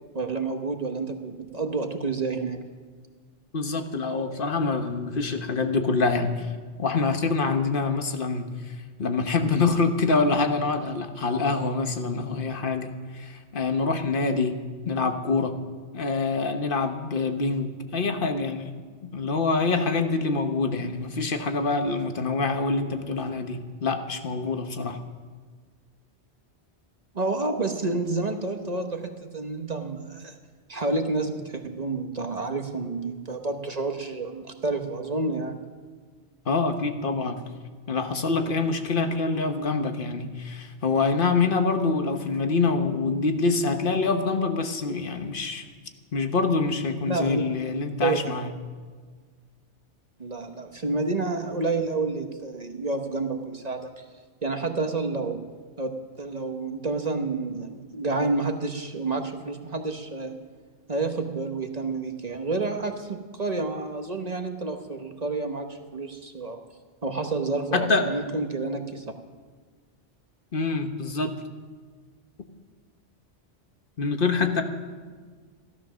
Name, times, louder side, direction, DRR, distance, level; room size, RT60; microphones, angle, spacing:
voice 1, 0.1-2.6 27.1-30.4 30.7-35.6 47.0-47.4 48.0-48.3 50.2-54.0 54.4-55.4 55.8-55.9 56.2-60.3 60.9-66.6 67.0-69.0, right 3 dB, 40° right, 5 dB, 1.1 m, -29 dB
voice 2, 3.5-6.5 6.8-8.5 9.0-14.6 14.8-15.6 15.9-18.7 19.0-25.0 36.5-37.4 37.9-45.6 46.1-48.5 67.7-68.1 70.5-71.4 74.0-74.6, left 4 dB, 50° left, 7 dB, 1.3 m, -25 dB
15.0 x 12.5 x 6.3 m, 1.5 s
omnidirectional pair, 1.1 m